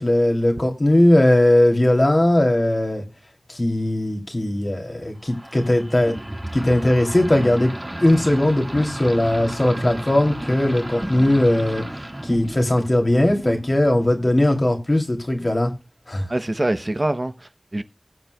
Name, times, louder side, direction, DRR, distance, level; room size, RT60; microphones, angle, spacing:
voice 1, 0.0-3.0 3.5-6.2 6.5-7.7 8.0-11.8 12.2-15.7 16.1-16.2, left 1 dB, 55° left, 2.7 m, -19 dB
sound 1, 5.2-14.6, right 1 dB, 30° right, 1.6 m, -32 dB
voice 2, 16.3-17.8, right 1 dB, 50° right, 0.8 m, -24 dB
20.0 x 7.6 x 2.2 m
wide cardioid pair, 45°, 0 cm